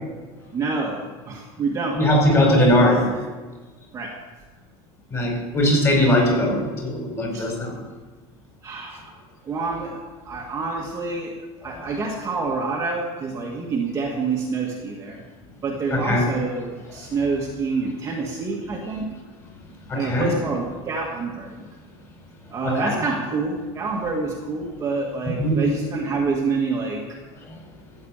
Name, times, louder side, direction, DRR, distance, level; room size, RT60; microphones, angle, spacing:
voice 1, 0.5-2.0 3.9-4.1 7.3-7.5 8.6-9.1 9.4-15.2 15.6-19.1 19.9-21.7 22.5-27.0, right 4 dB, 20° right, -2 dB, 1.8 m, -27 dB
voice 2, 2.0-3.1 5.1-7.7 11.7-11.9 15.9-16.3 19.9-20.3 22.6-22.8 25.4-25.6, left 1 dB, 20° left, -1 dB, 4.9 m, -20 dB
15.0 x 7.3 x 8.9 m, 1.4 s
cardioid pair, 165°, 14 cm